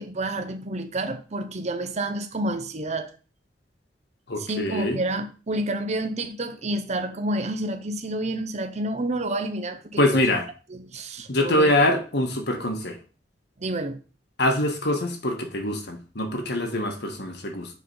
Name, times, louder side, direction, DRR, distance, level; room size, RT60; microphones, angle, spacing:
voice 1, 0.0-3.1 4.4-10.3 10.7-11.7 13.6-14.0, right 1 dB, 40° right, 0.8 m, -29 dB
voice 2, 4.3-5.0 10.0-10.5 11.3-13.0 14.4-17.7, left 1 dB, 65° left, 1.5 m, -24 dB
7.2 x 3.9 x 5.5 m
head